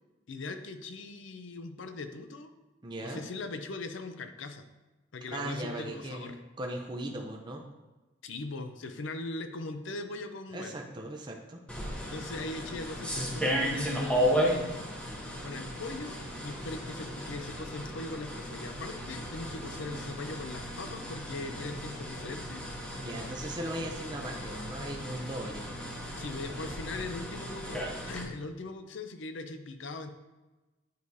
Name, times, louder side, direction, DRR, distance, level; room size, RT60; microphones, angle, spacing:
voice 1, 0.3-2.5 3.0-4.6 5.1-6.4 8.2-10.7 12.1-14.9 15.4-22.6 26.2-30.1, left 3 dB, 70° left, 8 dB, 0.5 m, -40 dB
voice 2, 2.8-3.2 5.3-7.6 10.5-11.6 23.0-25.7 26.5-26.7, right 1 dB, 20° right, 1 dB, 0.5 m, -38 dB
sound 1, 11.7-28.2, equal, 5° left, 0.8 m, -35 dB
9.2 x 4.7 x 2.7 m, 1.1 s
head